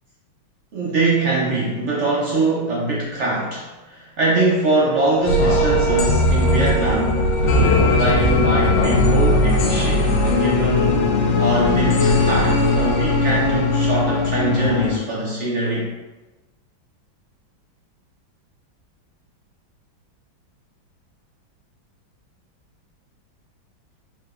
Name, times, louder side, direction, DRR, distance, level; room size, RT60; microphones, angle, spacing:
voice 1, 0.7-11.1 11.4-15.9, right 2 dB, 75° right, -5 dB, 0.6 m, -22 dB
sound 1, 5.3-15.0, left 2 dB, 75° left, 1.3 m, -18 dB
4.7 x 4.3 x 2.4 m, 1.1 s
omnidirectional pair, 2.2 m